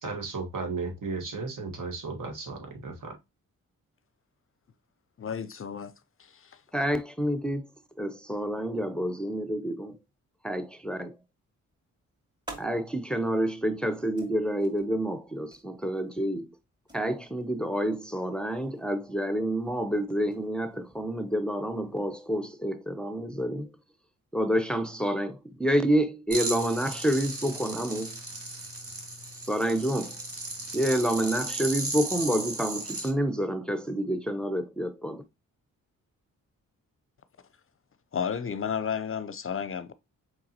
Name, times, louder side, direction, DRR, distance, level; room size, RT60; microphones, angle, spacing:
voice 1, 0.0-3.2, right 4 dB, 70° right, 1.6 m, -35 dB
voice 2, 5.2-5.9 6.2-6.6 38.1-39.9, left 7 dB, 40° left, 0.5 m, -32 dB
voice 3, 6.7-7.6 8.0-10.0 10.4-11.1 12.6-16.5 16.9-23.7 24.3-28.1 29.5-30.2 30.7-35.2, right 1 dB, 5° left, 0.7 m, -28 dB
sound 1, 11.7-22.2, right 1 dB, 15° right, 2.4 m, -53 dB
sound 2, 26.3-33.1, right 2 dB, 45° right, 1.7 m, -36 dB
4.7 x 3.8 x 2.8 m
cardioid pair, 65°, 33 cm